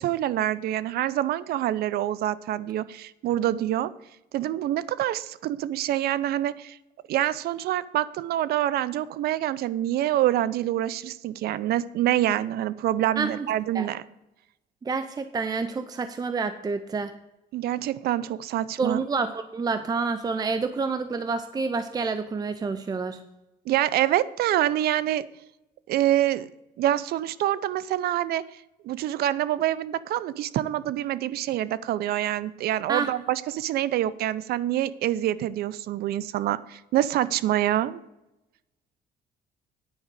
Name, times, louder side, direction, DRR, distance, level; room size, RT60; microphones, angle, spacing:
voice 1, 0.0-3.9 4.3-6.8 7.1-14.0 17.5-19.0 23.7-25.2 25.9-26.5 26.8-28.4 28.8-38.0, right 13 dB, 70° right, 17 dB, 0.6 m, -26 dB
voice 2, 13.2-13.5 13.7-13.9 14.8-17.1 18.8-23.2 32.9-33.1, right 4 dB, 25° right, 10 dB, 0.6 m, -28 dB
10.0 x 5.0 x 8.1 m, 0.92 s
cardioid pair, 110°, 17 cm